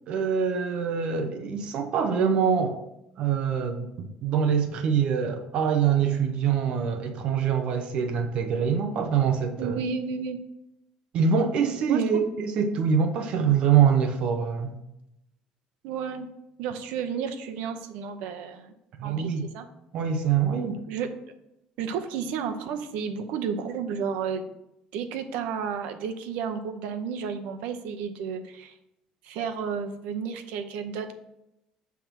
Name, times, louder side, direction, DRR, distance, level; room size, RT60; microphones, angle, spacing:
voice 1, 0.1-2.8 3.2-9.8 11.1-14.7 19.0-19.5 19.9-20.8, right 7 dB, 45° right, 0.7 m, -24 dB
voice 2, 9.6-10.4 11.9-12.2 15.8-16.3 16.6-18.7 19.0-19.7 20.9-21.1 21.8-24.5 24.9-28.7 29.2-31.1, right 6 dB, 80° right, 0.8 m, -32 dB
7.4 x 3.5 x 6.1 m
cardioid pair, 175°, 2 cm